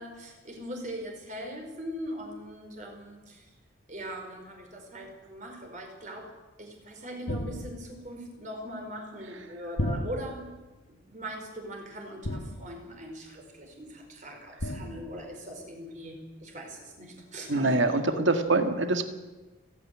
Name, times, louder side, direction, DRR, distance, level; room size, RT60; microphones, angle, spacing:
voice 1, 0.0-3.5 3.9-6.2 6.6-10.5 11.1-17.7, equal, 40° right, 2 dB, 4.9 m, -40 dB
sound 1, 7.3-8.1 9.8-10.6 12.2-13.0 14.6-15.2, left 1 dB, 75° left, 1.5 m, -34 dB
voice 2, 17.5-19.0, right 2 dB, 65° right, 7 dB, 1.8 m, -24 dB
30.0 x 10.0 x 9.7 m, 1.2 s
head